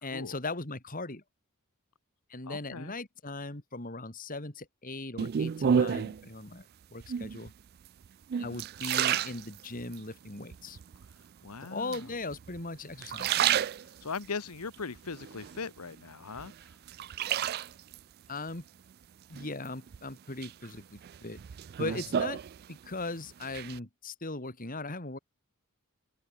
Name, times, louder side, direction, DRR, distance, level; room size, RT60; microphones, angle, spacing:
voice 1, 0.0-1.2 2.3-6.6 6.9-7.5 8.4-10.8 11.6-13.4 18.3-18.7 19.3-21.4 21.8-22.4 22.7-25.2, left 2 dB, 40° left, 2.7 m, -39 dB
voice 2, 2.5-2.9 11.4-12.0 14.0-16.5, left 5 dB, 90° left, 1.0 m, -39 dB
sound 1, 5.2-6.2 7.0-7.5 8.0-10.0 10.5-11.1 11.9-12.6 12.9-14.3 14.7-16.0 16.4-18.0 19.4-20.0 20.4-23.0 23.3-23.8, right 8 dB, 45° right, 0.3 m, -31 dB
head